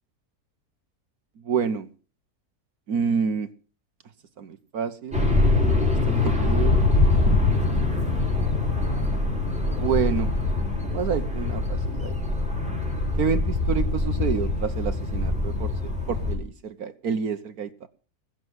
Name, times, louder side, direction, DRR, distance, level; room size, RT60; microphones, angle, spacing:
voice 1, 1.4-1.9 2.9-3.5 4.4-5.2 6.2-6.8 7.1-7.9 9.8-10.3 10.8-12.2 13.2-15.7 16.1-17.9, right 6 dB, 65° right, 10 dB, 1.5 m, -28 dB
sound 1, 5.1-16.4, left 2 dB, 5° right, 5.0 m, -23 dB
21.0 x 7.8 x 8.0 m, 0.38 s
omnidirectional pair, 1.7 m